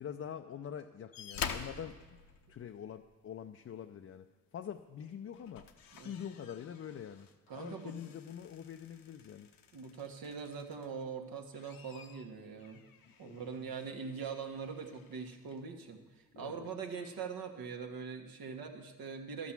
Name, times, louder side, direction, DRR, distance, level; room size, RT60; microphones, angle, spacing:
voice 1, 0.0-2.2 2.5-5.7 6.0-9.5 13.2-14.0 16.3-16.7, left 8 dB, 40° left, 6 dB, 0.5 m, -45 dB
sound 1, 1.1-3.1 4.6-4.8 5.3-11.0 11.4-15.6 16.5-16.6, left 7 dB, 65° left, 0.9 m, -48 dB
voice 2, 7.5-8.0 9.7-12.8 13.2-19.5, right 5 dB, 65° right, 4 dB, 1.4 m, -42 dB
12.0 x 6.1 x 7.3 m, 1.3 s
supercardioid pair, 60°, 37 cm